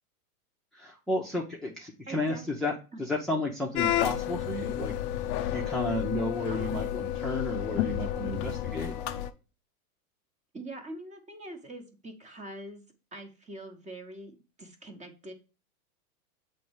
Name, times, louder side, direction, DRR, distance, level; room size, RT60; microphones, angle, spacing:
voice 1, 0.7-2.4 2.6-2.7 3.0-4.9 5.5-8.9, left 1 dB, ahead, -3 dB, 0.7 m, -32 dB
voice 2, 2.0-2.4 2.9-3.0 6.5-7.1 10.5-12.8 13.1-15.3, right 1 dB, 15° right, 6 dB, 1.1 m, -43 dB
sound 1, 3.7-9.3, left 11 dB, 25° left, 0.4 m, -31 dB
7.4 x 3.3 x 4.7 m, 0.32 s
hypercardioid pair, 115°, 45 cm